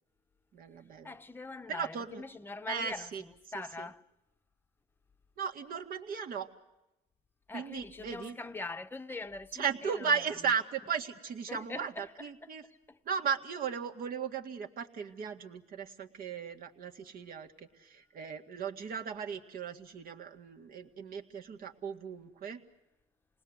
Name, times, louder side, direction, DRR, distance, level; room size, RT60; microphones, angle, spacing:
voice 1, 0.5-1.1 1.7-2.2 2.7-3.2 3.5-3.9 5.4-6.5 7.5-8.4 9.5-12.6 13.1-22.6, right 6 dB, 60° right, 2.0 m, -36 dB
voice 2, 1.0-4.0 7.5-10.1 11.5-13.0, left 3 dB, 10° left, 0.9 m, -43 dB
28.5 x 20.0 x 8.0 m
cardioid pair, 110°, 17 cm